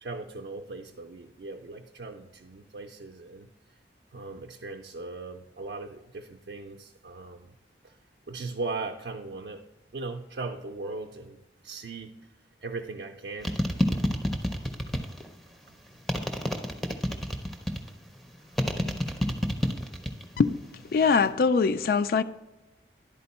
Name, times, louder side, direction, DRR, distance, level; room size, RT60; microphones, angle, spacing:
voice 1, 0.0-3.5 4.1-7.6 7.8-8.0 8.3-9.6 9.9-12.2 12.6-13.6 16.4-16.6, right 3 dB, 65° right, 0.4 m, -38 dB
sound 1, 13.4-15.3 16.1-17.9 18.6-20.3 20.6-21.1, left 1 dB, ahead, 0.5 m, -28 dB
voice 2, 20.9-22.2, left 5 dB, 55° left, 0.3 m, -22 dB
10.5 x 4.3 x 4.1 m
head